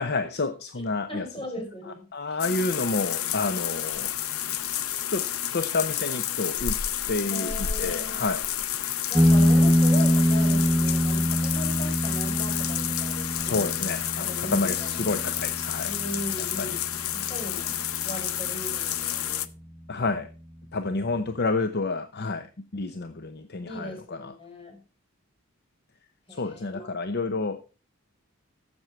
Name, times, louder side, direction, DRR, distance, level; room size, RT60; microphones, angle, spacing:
voice 1, 0.0-1.3 2.1-4.1 5.1-5.3 5.5-6.8 7.1-7.5 7.8-8.4 13.1-15.9 16.6-16.8 19.9-20.3 20.7-24.3 26.3-27.6, left 3 dB, 50° left, 9 dB, 0.8 m, -29 dB
voice 2, 0.8-2.4 7.3-8.5 9.1-13.7 14.2-14.9 15.9-16.9 17.1-17.7 18.0-19.5 23.7-24.8 26.3-26.9, left 1 dB, 25° left, 3 dB, 4.4 m, -38 dB
sound 1, 2.4-19.5, left 11 dB, 85° left, 0.7 m, -30 dB
sound 2, 9.1-18.2, equal, 5° left, 1.0 m, -24 dB
12.5 x 7.9 x 4.5 m, 0.34 s
head